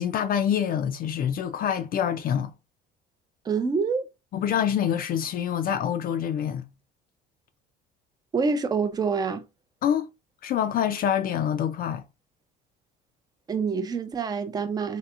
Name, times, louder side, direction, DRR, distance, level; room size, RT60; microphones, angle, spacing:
voice 1, 0.0-2.5 4.3-6.6 9.8-10.1 10.4-12.0, left 9 dB, 45° left, 0.4 m, -26 dB
voice 2, 3.5-4.1 8.3-9.4 13.5-15.0, right 5 dB, 20° right, 0.4 m, -26 dB
3.3 x 2.8 x 2.4 m
cardioid pair, 110°, 20 cm